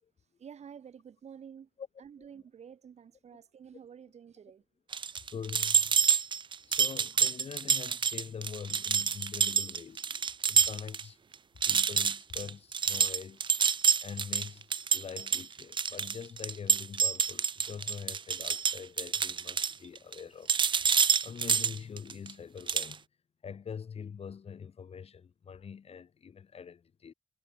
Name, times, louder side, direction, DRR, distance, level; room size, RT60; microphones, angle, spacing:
voice 1, 0.4-1.7 2.0-4.6, right 7 dB, 75° right, 2.6 m, -50 dB
sound 1, 4.9-11.0 11.3-11.4 11.6-20.2 20.5-22.3 22.7-22.9, right 6 dB, 45° right, 0.7 m, -28 dB
voice 2, 5.3-5.9 6.7-10.0 10.5-11.2 11.6-13.5 14.0-14.6 14.9-20.5 21.2-23.0 23.4-27.1, left 7 dB, 60° left, 7.1 m, -44 dB
wide cardioid pair, 175°, 11 cm